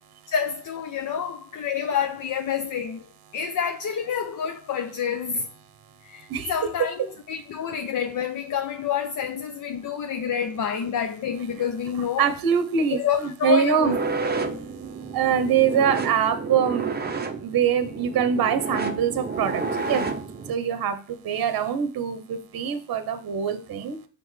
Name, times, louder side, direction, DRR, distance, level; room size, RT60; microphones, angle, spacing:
voice 1, 0.3-3.1 3.3-5.5 6.0-12.3 12.9-14.0, left 7 dB, 40° left, 0.7 m, -28 dB
voice 2, 12.2-13.9 14.8-16.9 17.4-20.2 20.5-24.1, right 8 dB, 45° right, 0.9 m, -24 dB
sound 1, 13.8-20.5, right 4 dB, 20° right, 0.7 m, -30 dB
5.8 x 5.1 x 3.2 m
supercardioid pair, 80°, 48 cm